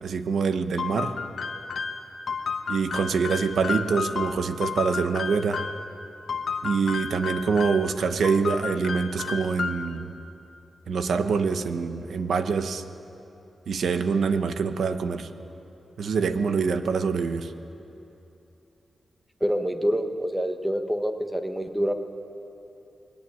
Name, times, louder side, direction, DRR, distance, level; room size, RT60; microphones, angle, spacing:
voice 1, 0.0-1.2 2.7-5.6 6.6-10.1 10.9-12.8 13.7-15.3 16.0-17.5, right 5 dB, 75° right, 9 dB, 1.1 m, -25 dB
sound 1, 0.8-5.9 6.3-7.9 8.2-10.0, left 5 dB, 60° left, 1.3 m, -32 dB
voice 2, 19.4-21.9, equal, 5° right, 6 dB, 1.3 m, -26 dB
21.0 x 17.5 x 9.4 m, 2.9 s
wide cardioid pair, 145°, 0 cm